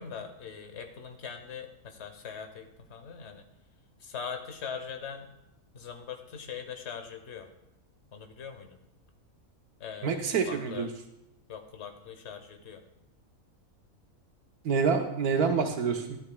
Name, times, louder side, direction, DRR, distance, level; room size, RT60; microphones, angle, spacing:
voice 1, 0.0-3.5 4.0-5.3 5.7-7.5 8.1-8.8 9.8-10.9 11.5-12.8, left 7 dB, 50° left, 6 dB, 1.2 m, -41 dB
voice 2, 10.0-10.9 14.6-16.2, right 5 dB, 75° right, 5 dB, 1.3 m, -27 dB
13.0 x 10.5 x 2.3 m, 0.86 s
omnidirectional pair, 1.6 m